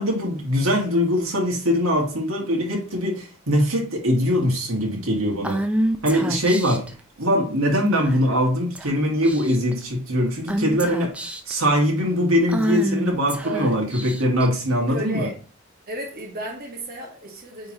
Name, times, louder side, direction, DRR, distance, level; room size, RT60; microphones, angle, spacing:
voice 1, 0.0-5.6 6.0-6.9 7.2-11.1 11.5-15.3, equal, 80° right, 2.0 m, -22 dB
Female speech woman speaking / Whispering, 5.4-6.9 7.9-8.3 8.8-8.9 9.2-9.7 10.5-11.6 12.5-14.5, right 1 dB, 5° right, 0.4 m, -27 dB
voice 2, 13.4-13.8 14.9-15.3 15.9-17.7, right 1 dB, 45° right, 1.7 m, -33 dB
9.0 x 3.8 x 3.0 m
head